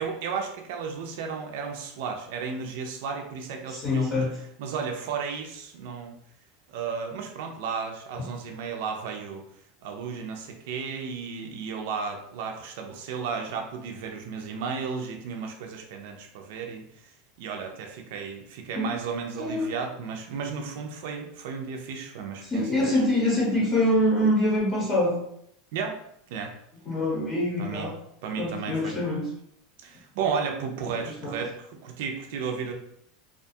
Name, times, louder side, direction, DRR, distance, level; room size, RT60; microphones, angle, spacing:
voice 1, 0.0-4.2 4.6-6.2 6.7-9.4 9.8-22.6 25.7-26.0 26.3-26.5 27.6-27.9 28.2-28.9 29.8-32.7, right 5 dB, 70° right, 2 dB, 0.4 m, -33 dB
voice 2, 3.7-4.4 18.8-19.0 19.4-19.7 22.4-25.1 26.8-27.9 28.4-29.2 31.0-31.4, left 1 dB, 30° left, -4 dB, 0.8 m, -25 dB
2.4 x 2.3 x 2.6 m, 0.73 s
supercardioid pair, 130°, 0 cm